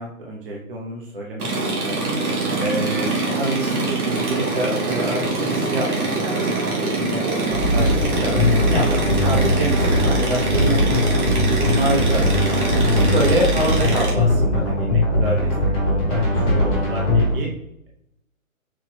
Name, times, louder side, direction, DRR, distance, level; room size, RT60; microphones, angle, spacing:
voice 1, 0.0-2.2 2.6-9.7 10.0-12.3 12.5-12.6 13.1-15.5 15.8-17.5, right 1 dB, 40° right, -2 dB, 0.7 m, -27 dB
sound 1, 1.4-14.1, right 2 dB, 90° right, 1.6 m, -24 dB
sound 2, 7.5-17.3, left 1 dB, 10° left, 1.0 m, -20 dB
4.5 x 2.2 x 4.0 m, 0.79 s
hypercardioid pair, 170°, 43 cm